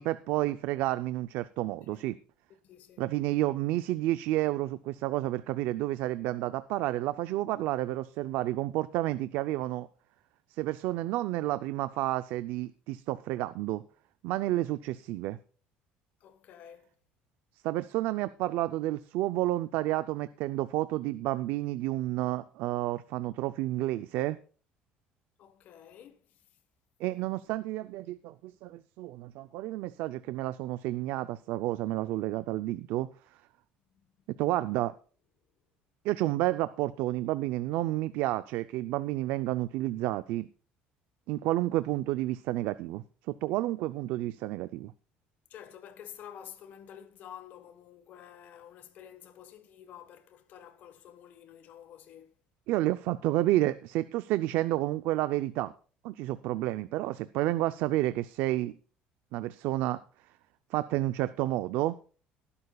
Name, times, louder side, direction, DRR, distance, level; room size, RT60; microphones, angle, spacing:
voice 1, 0.0-2.2 3.0-9.9 10.5-13.8 14.2-15.4 17.6-24.4 27.0-33.1 34.3-34.9 36.0-40.5 41.3-44.9 52.7-55.7 56.0-58.8 59.3-60.0 60.7-62.0, right 16 dB, 70° right, 0.5 m, -30 dB
voice 2, 2.6-3.1 16.2-16.9 25.4-26.4 34.6-34.8 45.5-52.3, left 9 dB, 50° left, 1.3 m, -50 dB
18.5 x 11.0 x 2.3 m
cardioid pair, 155°, 4 cm